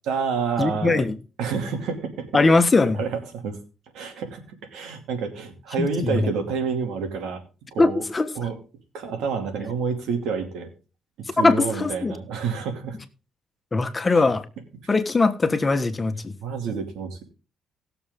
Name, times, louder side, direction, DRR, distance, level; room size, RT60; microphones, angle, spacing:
voice 1, 0.0-1.0 1.4-2.3 2.9-3.6 3.9-7.4 7.7-8.0 8.4-8.6 8.9-10.7 11.3-13.0 14.1-14.3 16.4-17.2, right 5 dB, 85° right, 2.6 m, -28 dB
voice 2, 0.6-1.2 2.3-3.0 5.8-6.3 7.8-8.3 11.4-12.2 13.7-14.4 14.9-16.3, left 3 dB, 25° left, 1.4 m, -20 dB
19.0 x 7.0 x 3.7 m
cardioid pair, 90°, 0 cm